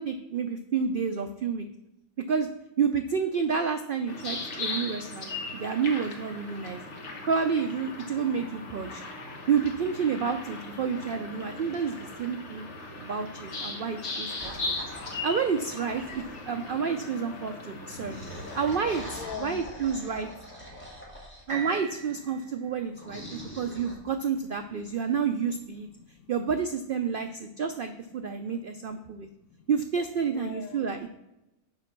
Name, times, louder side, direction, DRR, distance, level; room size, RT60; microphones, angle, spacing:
voice 1, 0.0-1.7 2.3-2.5 2.8-6.8 7.3-9.0 9.5-12.7 13.0-14.8 15.2-18.2 18.5-20.3 21.5-25.9 26.3-29.3 29.7-31.1, right 6 dB, 85° right, 7 dB, 0.4 m, -29 dB
sound 1, 4.1-19.3, left 3 dB, 50° left, 1.4 m, -38 dB
sound 2, 14.4-16.7 17.8-21.4 23.0-23.9, equal, 5° left, 2.1 m, -43 dB
voice 2, 17.3-18.4 19.1-19.7 20.6-20.9 22.3-22.5 24.6-25.2 25.7-26.3 27.1-27.5 28.4-29.7 30.2-30.8, left 9 dB, 75° left, 10 dB, 1.0 m, -47 dB
sound 3, 21.5-25.4 26.0-26.1, right 4 dB, 50° right, 3.6 m, -43 dB
6.6 x 5.1 x 5.9 m, 0.91 s
omnidirectional pair, 1.6 m